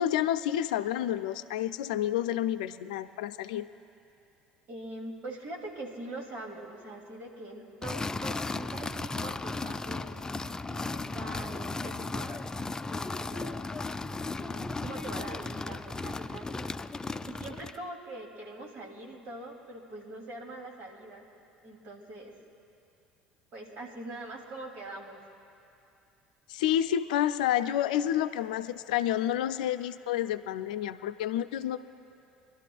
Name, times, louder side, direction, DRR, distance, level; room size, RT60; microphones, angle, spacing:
voice 1, 0.0-3.7 26.5-31.8, left 11 dB, 75° left, 12 dB, 0.5 m, -29 dB
voice 2, 4.7-10.2 10.7-12.4 12.9-13.8 14.3-16.7 17.2-21.2 21.6-22.4 23.5-25.2, right 2 dB, 55° right, 0 dB, 2.8 m, -43 dB
sound 1, 7.8-17.8, left 3 dB, 15° left, 0.4 m, -35 dB
26.5 x 12.5 x 2.4 m, 2.7 s
figure-of-eight pair, 60°, 4 cm